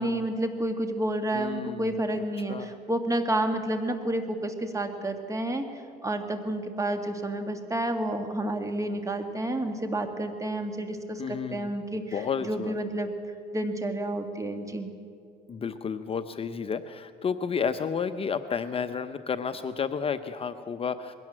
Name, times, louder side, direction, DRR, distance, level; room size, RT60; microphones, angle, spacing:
voice 1, 0.0-5.7 6.0-12.1 12.4-13.1 13.5-14.9, right 1 dB, 20° right, 6 dB, 2.0 m, -30 dB
voice 2, 1.3-2.7 11.2-11.7 12.1-12.7 15.5-21.1, left 6 dB, 35° left, 9 dB, 0.7 m, -32 dB
21.0 x 17.0 x 7.6 m, 2.3 s
cardioid pair, 110°, 17 cm